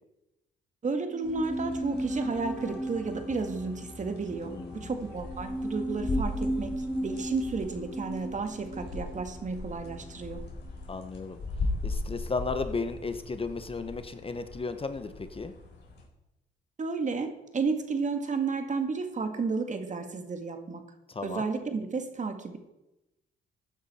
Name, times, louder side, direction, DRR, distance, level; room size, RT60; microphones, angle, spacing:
voice 1, 0.8-10.4 16.8-20.8 21.2-22.6, right 4 dB, 40° right, 7 dB, 1.8 m, -32 dB
sound 1, 1.1-10.4 10.7-10.8, right 1 dB, 5° left, 1.7 m, -36 dB
sound 2, 1.2-16.1, left 2 dB, 60° left, 4.3 m, -39 dB
voice 2, 4.4-4.9 10.9-11.4 11.8-15.5 21.1-21.5, left 4 dB, 30° left, 9 dB, 1.0 m, -34 dB
15.0 x 9.5 x 4.3 m, 0.94 s
cardioid pair, 90°, 20 cm